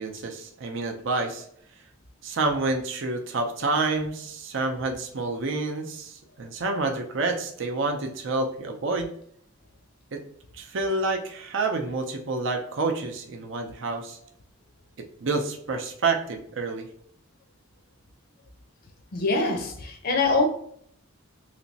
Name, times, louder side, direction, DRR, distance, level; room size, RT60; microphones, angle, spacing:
voice 1, 0.0-1.4 2.2-9.1 10.1-10.2 10.6-14.2 15.0-16.9, right 3 dB, 70° right, 0.6 m, -28 dB
voice 2, 19.1-20.5, left 3 dB, 50° left, 0.5 m, -24 dB
3.3 x 3.0 x 2.7 m
head